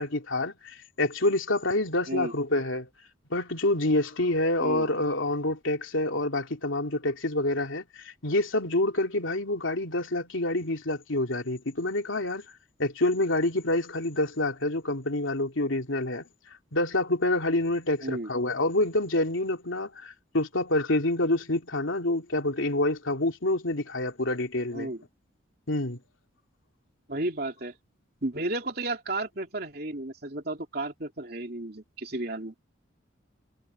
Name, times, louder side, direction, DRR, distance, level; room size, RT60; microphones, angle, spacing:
voice 1, 0.0-2.9 3.3-12.4 12.8-16.2 16.7-24.9 25.7-26.0, left 2 dB, 80° left, 2.9 m, -27 dB
voice 2, 4.6-4.9 18.0-18.3 24.7-25.0 27.1-27.7 28.2-32.6, right 2 dB, 50° right, 3.1 m, -33 dB
head